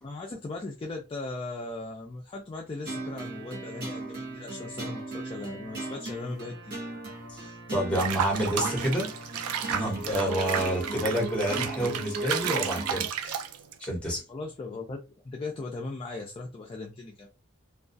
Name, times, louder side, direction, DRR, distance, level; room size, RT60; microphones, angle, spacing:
voice 1, 0.0-6.8 14.3-17.3, left 3 dB, 25° left, 0.3 m, -38 dB
sound 1, 2.9-13.1, right 1 dB, 50° right, 0.9 m, -37 dB
voice 2, 7.7-13.4 13.8-14.2, right 1 dB, 5° left, 0.9 m, -29 dB
Water / Bathtub (filling or washing), 7.9-13.9, right 7 dB, 90° right, 0.3 m, -33 dB
2.2 x 2.2 x 2.5 m
head